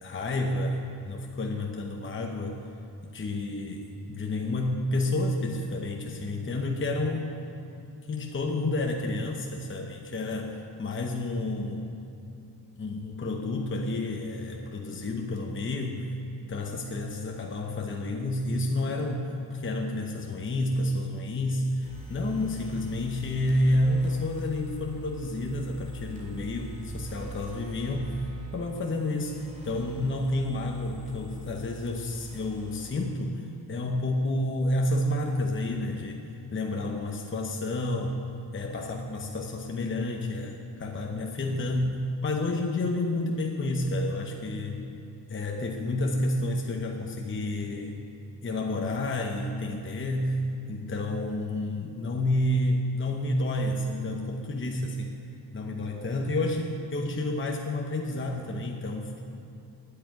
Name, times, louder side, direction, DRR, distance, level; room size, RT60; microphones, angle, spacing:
voice 1, 0.0-2.6 3.0-7.4 8.1-11.9 12.8-16.1 16.5-28.3 28.5-29.4 29.6-36.3 36.5-38.2 38.5-44.8 45.3-48.0 48.4-50.4 50.7-55.1 55.5-59.1, left 1 dB, 30° left, 1 dB, 0.9 m, -30 dB
sound 1, 21.8-33.1, right 3 dB, 15° right, 2.5 m, -44 dB
8.9 x 8.4 x 9.2 m, 2.7 s
wide cardioid pair, 120°, 43 cm